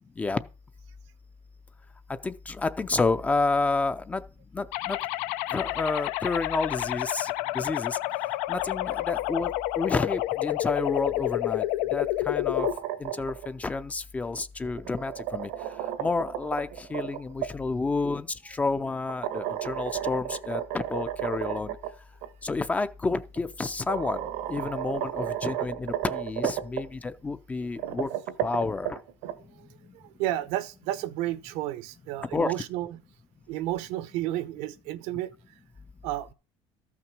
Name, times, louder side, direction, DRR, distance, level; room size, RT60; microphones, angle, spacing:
voice 1, 2.2-4.2 4.5-5.0 5.5-8.0 8.5-11.6 11.9-12.7 13.0-15.5 16.0-21.8 22.4-24.2 24.5-28.1 28.4-29.0 32.3-32.5, left 3 dB, 10° left, 0.5 m, -30 dB
sound 1, 4.7-12.7, left 16 dB, 90° left, 0.7 m, -29 dB
sound 2, 12.3-13.5 14.6-17.5 19.1-21.9 22.2-22.3 23.4-23.5 23.9-26.8 27.6-29.3, right 12 dB, 85° right, 1.6 m, -33 dB
voice 2, 29.9-33.0 33.5-35.3 36.0-36.3, right 14 dB, 70° right, 0.9 m, -32 dB
14.0 x 5.9 x 6.0 m
cardioid pair, 175°, 12 cm